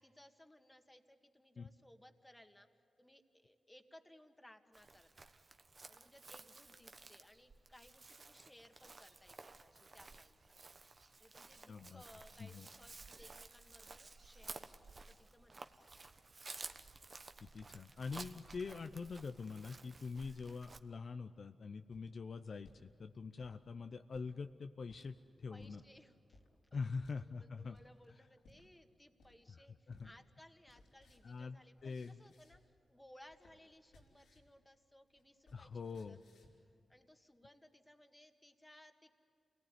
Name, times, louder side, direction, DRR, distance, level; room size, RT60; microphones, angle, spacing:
voice 1, 0.0-2.7 3.0-5.3 5.9-10.6 11.2-15.9 25.5-26.4 26.7-26.9 27.2-36.2 36.6-39.1, left 1 dB, 15° left, 6 dB, 1.9 m, -63 dB
Chirp tweet, 4.7-20.8, right 3 dB, 45° right, 1.2 m, -54 dB
voice 2, 11.7-12.0 12.4-12.7 17.4-25.8 26.7-27.8 29.5-30.1 31.2-32.2 35.5-36.2, left 4 dB, 60° left, 8 dB, 0.6 m, -45 dB
sound 1, 21.8-22.9 23.3-23.6 24.1-24.3 24.9-25.1 25.6-25.8 26.3-26.5 27.0-27.2 27.7-28.0 28.4-28.6 29.2-29.6 29.9-30.1 30.4-32.8 33.1-34.6 34.8-36.7, left 1 dB, 90° left, 4.1 m, -65 dB
28.0 x 18.5 x 9.8 m, 2.3 s
cardioid pair, 55°, 0 cm